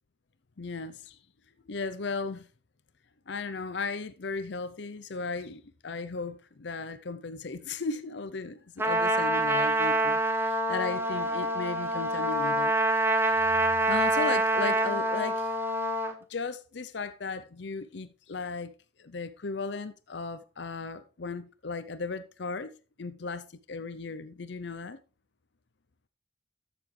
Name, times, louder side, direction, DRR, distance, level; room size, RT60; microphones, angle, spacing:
voice 1, 0.6-1.2 1.6-2.5 3.3-12.7 13.3-13.6 13.9-15.5 16.3-18.7 19.0-22.7 23.0-25.0, left 4 dB, 65° left, 0.6 m, -36 dB
Trumpet, 8.8-16.1, right 1 dB, 10° right, 1.0 m, -26 dB
13.0 x 6.9 x 3.3 m
head